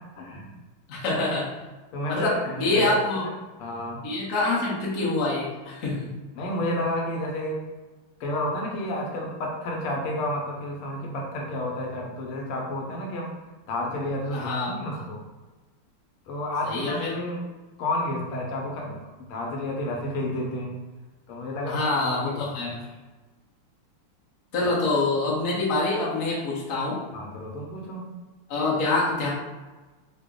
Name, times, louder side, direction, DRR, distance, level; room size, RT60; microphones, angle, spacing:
voice 1, 0.2-0.5 1.1-1.2 1.9-2.9 3.2-3.3 3.6-4.0 6.4-7.6 8.2-13.3 13.7-15.2 16.3-17.4 17.8-20.8 21.3-21.8 22.2-22.7 27.1-28.1, left 1 dB, 85° left, -1 dB, 1.6 m, -31 dB
voice 2, 0.9-1.5 2.1-3.3 4.0-6.1 14.3-14.7 16.6-17.1 21.7-22.8 24.5-27.0 28.5-29.3, left 2 dB, 50° left, -6 dB, 1.1 m, -25 dB
3.9 x 2.1 x 3.5 m, 1.2 s
omnidirectional pair, 2.4 m